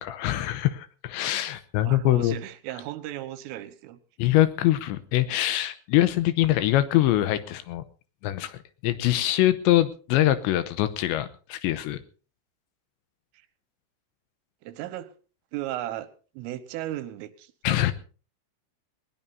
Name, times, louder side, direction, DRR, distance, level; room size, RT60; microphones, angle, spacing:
voice 1, 0.0-2.4 4.2-7.8 8.2-12.0 17.6-17.9, left 14 dB, 80° left, 13 dB, 2.9 m, -24 dB
voice 2, 1.8-4.0 13.3-13.5 14.6-15.1 15.5-16.1 16.4-17.9, right 14 dB, 85° right, 13 dB, 3.8 m, -36 dB
20.0 x 20.0 x 2.7 m, 0.38 s
omnidirectional pair, 5.7 m